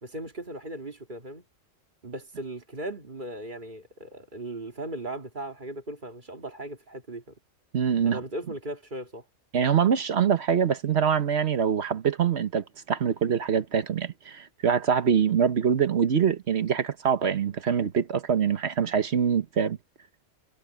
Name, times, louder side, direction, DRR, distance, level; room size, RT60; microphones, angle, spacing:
voice 1, 0.0-1.4 2.0-7.3 8.0-9.2, right 1 dB, 40° right, 2.5 m, -37 dB
voice 2, 7.7-8.2 9.5-19.8, right 7 dB, 60° right, 1.3 m, -24 dB
omnidirectional pair, 1.3 m